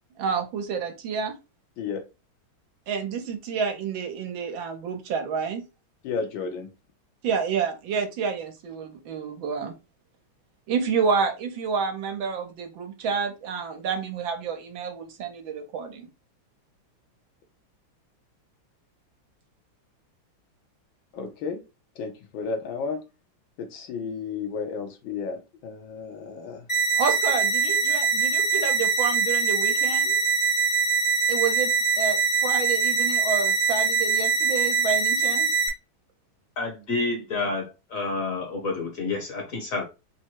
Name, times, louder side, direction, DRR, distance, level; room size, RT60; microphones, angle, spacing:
voice 1, 0.2-1.4 2.9-5.6 7.2-9.7 10.7-16.1 27.0-30.2 31.3-35.5, right 5 dB, 75° right, 1.5 m, -29 dB
voice 2, 6.0-6.7 21.1-21.6 22.0-23.0 23.6-26.7, left 5 dB, 70° left, 1.5 m, -33 dB
sound 1, 26.7-35.7, right 5 dB, 25° left, 0.7 m, -23 dB
voice 3, 36.6-39.8, left 3 dB, 50° left, 1.2 m, -29 dB
4.4 x 2.2 x 4.4 m
omnidirectional pair, 2.2 m